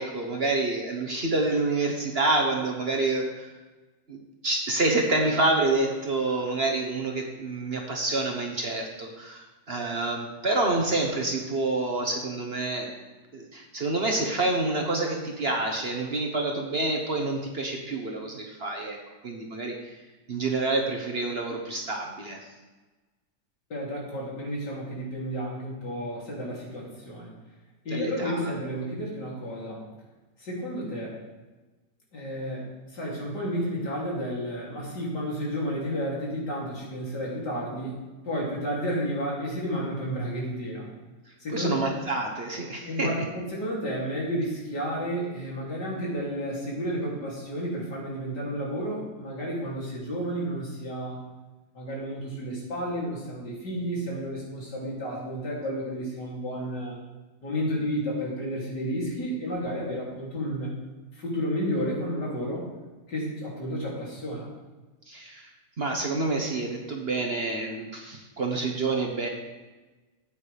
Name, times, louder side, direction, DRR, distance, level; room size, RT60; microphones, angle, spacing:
voice 1, 0.0-3.5 4.1-12.9 13.3-19.0 19.2-19.7 20.3-22.4 27.9-28.5 41.5-43.1 65.1-65.5 65.8-69.3, right 2 dB, 40° right, 1 dB, 1.2 m, -28 dB
voice 2, 23.7-27.3 27.9-29.8 30.4-31.2 32.1-37.9 38.2-40.9 41.4-42.0 42.9-51.2 51.7-57.0 57.4-60.7 61.1-62.7 63.1-64.5, equal, 80° left, -5 dB, 3.6 m, -31 dB
13.5 x 8.8 x 3.4 m, 1.2 s
omnidirectional pair, 1.8 m